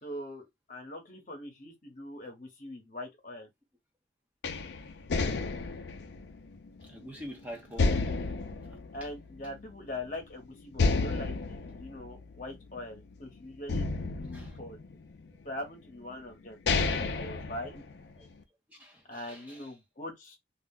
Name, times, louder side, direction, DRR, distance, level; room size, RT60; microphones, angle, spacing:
voice 1, 0.0-3.5 8.9-14.8 15.4-17.8 19.1-20.4, left 1 dB, 45° left, 0.9 m, -42 dB
sound 1, 4.4-7.2 7.8-9.7 10.1-10.2 10.7-13.1 13.7-15.3 16.0-16.1 16.5-18.3, left 3 dB, 70° left, 0.4 m, -31 dB
voice 2, 6.9-7.9 14.3-14.6 16.9-17.1 18.2-18.3 18.8-19.7, equal, 10° right, 0.6 m, -45 dB
2.4 x 2.1 x 3.5 m
head